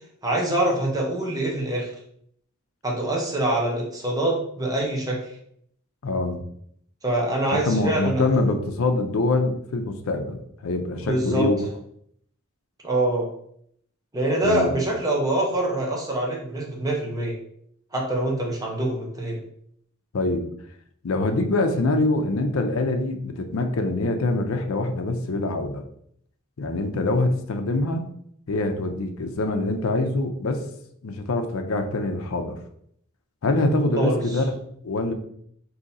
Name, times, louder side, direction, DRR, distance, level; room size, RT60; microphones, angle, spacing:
voice 1, 0.2-1.9 2.8-5.3 7.0-8.2 11.0-11.5 12.8-13.3 14.1-17.4 17.9-19.4 34.0-34.2, right 1 dB, 20° right, -2 dB, 0.9 m, -24 dB
voice 2, 6.0-6.4 7.5-11.6 14.4-14.7 20.1-20.4 21.0-25.8 26.6-28.1 28.5-30.6 31.0-32.6 33.4-34.5 34.8-35.1, left 2 dB, 70° left, 5 dB, 0.5 m, -24 dB
3.7 x 2.8 x 4.1 m, 0.68 s
head